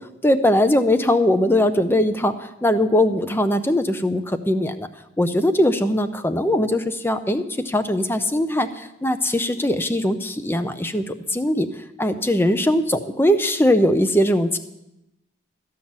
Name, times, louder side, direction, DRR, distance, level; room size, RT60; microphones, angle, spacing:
voice 1, 0.2-4.9 5.2-11.7 12.0-14.6, left 1 dB, 10° left, 10 dB, 0.6 m, -20 dB
14.0 x 5.8 x 8.7 m, 0.90 s
head